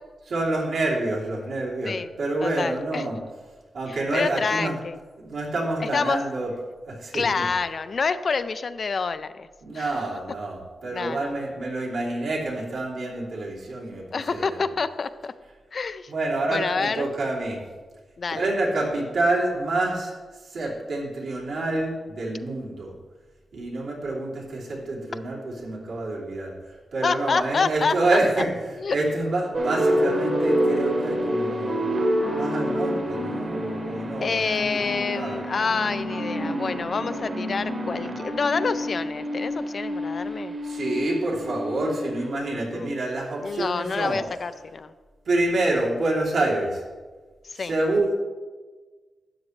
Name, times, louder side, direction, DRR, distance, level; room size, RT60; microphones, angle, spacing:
voice 1, 0.3-3.2 3.7-4.8 5.2-6.5 6.9-7.5 9.6-14.6 16.1-17.6 18.3-20.1 20.4-22.9 23.5-26.5 26.9-28.5 28.9-35.4 40.6-44.2 45.3-46.8 47.5-48.1, right 2 dB, 70° right, -5 dB, 2.9 m, -27 dB
voice 2, 2.4-3.1 3.9-5.0 5.8-6.2 7.1-9.5 9.7-10.0 10.8-11.3 14.1-15.3 15.7-16.1 16.5-17.1 18.2-18.5 27.0-28.2 28.8-29.0 34.2-40.6 42.7-42.9 43.4-44.9 47.4-47.7, left 5 dB, 45° left, 12 dB, 0.4 m, -27 dB
sound 1, 29.5-42.9, equal, 40° right, 1.6 m, -28 dB
12.5 x 9.6 x 3.2 m, 1.4 s
wide cardioid pair, 145°, 0 cm